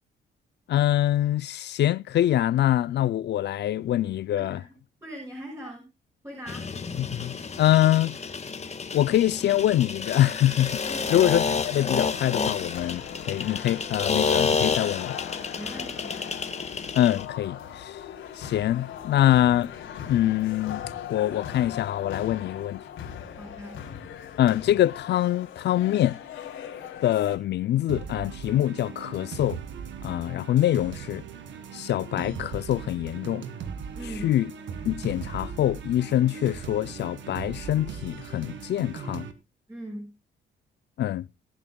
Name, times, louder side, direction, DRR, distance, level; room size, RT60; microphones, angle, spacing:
voice 1, 0.7-4.6 7.0-8.1 8.9-10.8 11.1-15.2 16.9-18.0 18.4-19.7 20.0-22.8 24.4-26.2 27.0-29.6 30.0-31.2 31.7-33.4 34.2-34.5 34.9-39.3 41.0-41.3, left 12 dB, 60° left, 0.5 m, -24 dB
voice 2, 4.3-4.7 5.0-5.9 6.2-6.7 10.9-11.2 15.5-16.2 22.4-22.5 23.4-23.7 33.9-34.3 39.7-40.1, equal, 15° right, 5.9 m, -40 dB
sound 1, 6.5-17.3, left 5 dB, 35° left, 1.7 m, -30 dB
sound 2, 10.7-27.4, left 9 dB, 85° left, 3.4 m, -39 dB
sound 3, 27.9-39.3, right 7 dB, 70° right, 1.9 m, -39 dB
21.5 x 8.8 x 2.3 m
cardioid pair, 90°, 20 cm